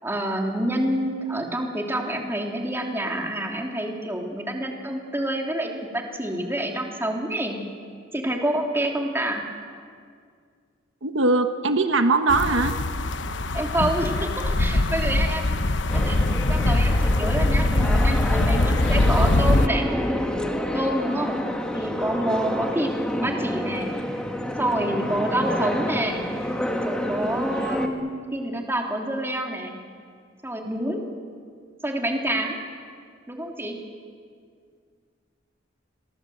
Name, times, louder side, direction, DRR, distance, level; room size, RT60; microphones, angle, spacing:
voice 1, 0.0-7.6 8.1-9.5 13.5-15.6 15.9-19.8 20.7-21.4 21.7-23.9 24.6-26.2 26.8-29.8 30.4-31.0 31.8-32.6 33.3-33.8, right 1 dB, 15° right, 1 dB, 3.2 m, -27 dB
voice 2, 11.0-12.7, right 3 dB, 85° right, 7 dB, 1.3 m, -21 dB
sound 1, 12.3-19.7, left 2 dB, 70° left, 1.0 m, -22 dB
sound 2, 15.9-27.9, left 1 dB, 5° left, 2.0 m, -29 dB
30.0 x 22.5 x 7.9 m, 2.1 s
head